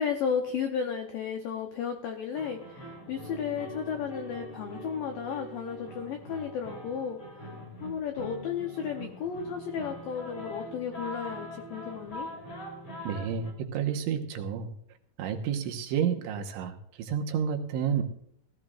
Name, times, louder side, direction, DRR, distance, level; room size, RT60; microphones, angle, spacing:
voice 1, 0.0-7.2 7.8-12.3, left 7 dB, 85° left, 4 dB, 2.0 m, -33 dB
sound 1, 2.3-13.5, equal, 30° left, 3.2 m, -43 dB
voice 2, 13.1-14.7 15.2-18.0, right 7 dB, 80° right, 4 dB, 3.5 m, -30 dB
20.0 x 14.5 x 2.5 m, 0.69 s
omnidirectional pair, 5.4 m